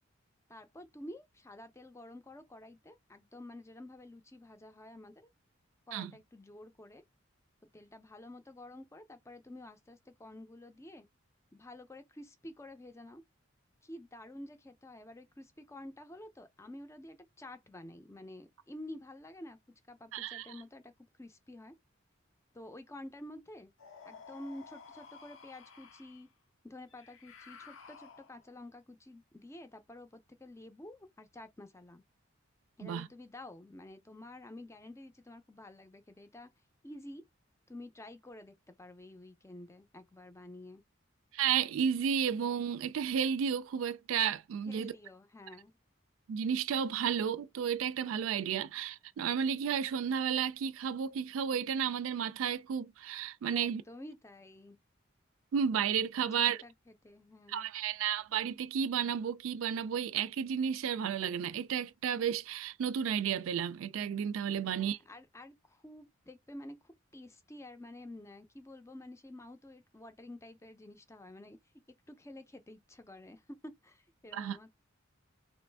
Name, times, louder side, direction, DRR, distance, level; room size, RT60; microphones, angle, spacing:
voice 1, 0.5-5.3 5.9-7.0 7.7-11.1 11.5-13.2 13.8-19.6 19.9-20.9 21.2-21.7 22.5-23.7 24.0-26.3 26.6-32.0 32.8-36.5 36.8-37.2 37.7-40.8 44.7-45.7 53.5-54.8 56.4-57.7 64.6-71.6 72.1-74.8, left 1 dB, 15° left, 0.5 m, -50 dB
voice 2, 20.1-20.5 32.8-33.1 41.3-44.9 46.3-53.8 55.5-56.6 57.5-65.0 74.3-74.6, right 8 dB, 85° right, 0.3 m, -32 dB
sound 1, 23.8-26.2 26.9-28.6, left 5 dB, 80° left, 0.7 m, -53 dB
3.0 x 2.5 x 3.3 m
head